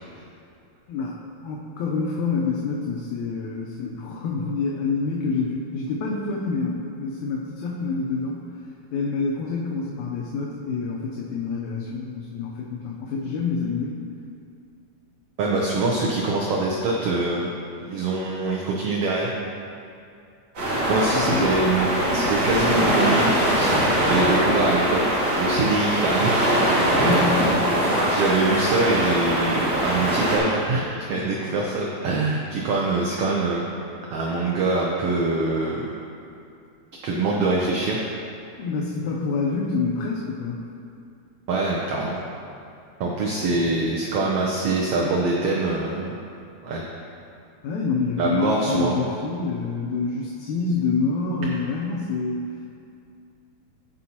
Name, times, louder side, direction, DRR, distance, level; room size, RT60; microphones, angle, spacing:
voice 1, 1.4-8.5 8.9-14.0 20.9-21.6 27.0-27.7 38.6-40.6 43.4-43.7 47.6-52.7, left 4 dB, 80° left, -3 dB, 2.1 m, -27 dB
voice 2, 15.4-17.5 17.9-19.3 20.9-25.1 25.4-26.6 28.1-33.6 34.1-35.9 37.0-38.0 41.5-42.2 43.0-46.2 46.6-46.8 48.2-49.1, right 3 dB, 70° right, -3 dB, 1.5 m, -24 dB
sound 1, 20.6-30.4, right 1 dB, 55° right, 2.9 m, -22 dB
15.5 x 5.4 x 2.8 m, 2.5 s
omnidirectional pair, 3.4 m